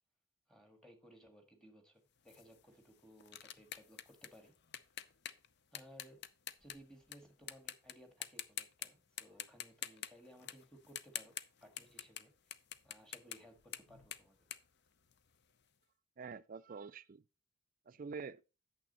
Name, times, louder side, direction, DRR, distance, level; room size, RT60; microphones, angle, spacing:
voice 1, 0.5-4.5 5.7-6.2 6.6-11.3 11.6-14.5, equal, 5° left, 1.7 m, -60 dB
sound 1, 2.3-7.2 7.5-7.9 8.2-8.9 9.2-15.5, left 10 dB, 55° left, 0.6 m, -47 dB
voice 2, 16.2-17.2 17.9-18.4, right 5 dB, 40° right, 0.4 m, -46 dB
8.9 x 6.9 x 4.1 m
head